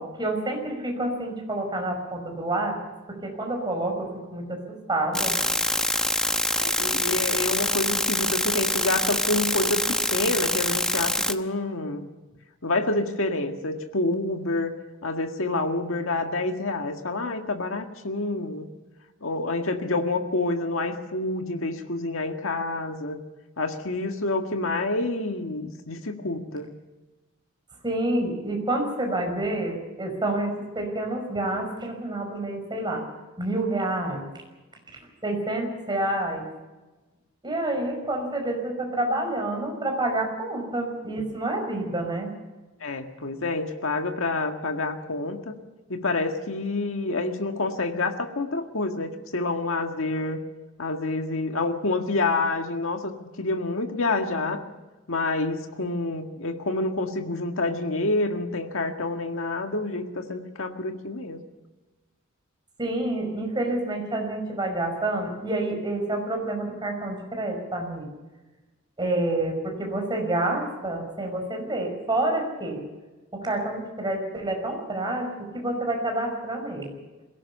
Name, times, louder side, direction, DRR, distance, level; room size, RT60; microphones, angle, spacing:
voice 1, 0.0-2.8 3.1-4.6 4.9-5.4 27.8-33.0 33.4-34.3 35.2-36.5 37.4-42.3 62.8-68.1 69.0-72.8 73.3-77.0, right 1 dB, 20° right, 2 dB, 5.6 m, -28 dB
sound 1, 5.1-11.3, left 1 dB, 5° left, 0.9 m, -25 dB
voice 2, 6.6-9.9 10.1-12.0 12.6-14.8 15.0-18.7 19.2-23.2 23.6-26.7 42.8-45.5 45.9-50.4 50.8-53.1 53.4-54.6 55.1-61.4, left 2 dB, 70° left, 5 dB, 1.8 m, -28 dB
21.5 x 17.5 x 6.9 m, 1.2 s
head